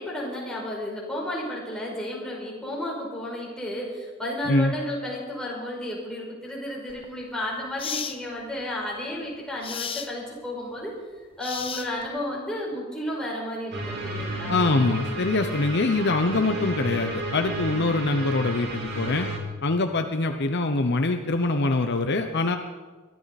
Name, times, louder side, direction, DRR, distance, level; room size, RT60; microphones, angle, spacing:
voice 1, 0.0-11.0 11.4-14.5, left 1 dB, 5° left, -4 dB, 5.3 m, -32 dB
voice 2, 4.4-4.7 14.5-19.3 19.6-22.6, left 2 dB, 55° left, 6 dB, 0.9 m, -24 dB
sound 1, 6.9-7.1 7.8-8.2 9.6-10.1 11.4-12.2, left 7 dB, 25° left, 0.9 m, -33 dB
sound 2, 13.7-19.4, right 1 dB, 55° right, 3.2 m, -32 dB
23.0 x 13.5 x 4.2 m, 1.4 s
head